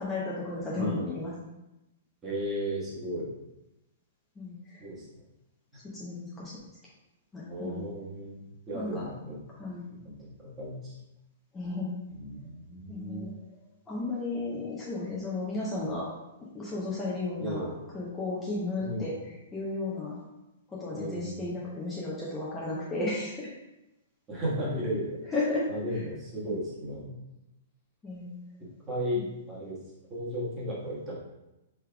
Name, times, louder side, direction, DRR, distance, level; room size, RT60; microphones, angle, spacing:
voice 1, 0.0-1.3 4.4-4.8 5.7-6.6 7.3-7.9 8.7-9.1 9.6-9.8 11.5-11.9 12.9-13.3 13.9-16.1 16.5-17.7 17.9-20.2 20.7-23.5 25.3-25.7 26.4-26.5 28.0-28.3 29.1-29.3, left 2 dB, 15° left, -7 dB, 0.8 m, -34 dB
voice 2, 2.2-3.3 4.8-5.2 5.7-5.8 7.5-9.4 9.9-10.9 12.1-13.3 17.4-17.8 18.8-19.1 20.9-21.5 24.3-25.2 25.7-27.1 28.6-29.8 30.1-31.2, equal, 20° right, -7 dB, 1.4 m, -35 dB
4.4 x 3.4 x 2.3 m, 0.95 s
figure-of-eight pair, 110°, 0 cm